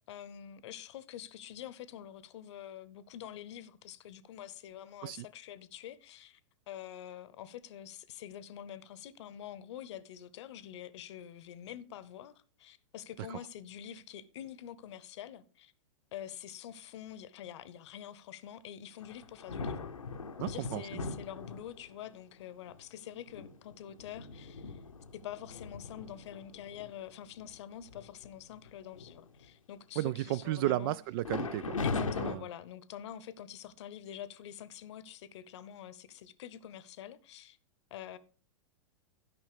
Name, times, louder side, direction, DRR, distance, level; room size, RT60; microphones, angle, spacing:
voice 1, 0.1-6.4 6.7-12.3 12.6-15.7 16.1-19.9 20.4-24.8 25.1-31.0 31.8-37.6 37.9-38.2, left 10 dB, 60° left, 0.8 m, -46 dB
sound 1, 19.0-22.0 22.7-22.8 23.3-26.9 27.4-27.5 27.9-28.3 28.6-29.4 31.2-32.3, left 4 dB, 90° left, 0.9 m, -39 dB
voice 2, 20.4-21.1 30.0-32.5, right 15 dB, 45° right, 0.4 m, -34 dB
12.0 x 5.5 x 4.9 m
hypercardioid pair, 105°, 17 cm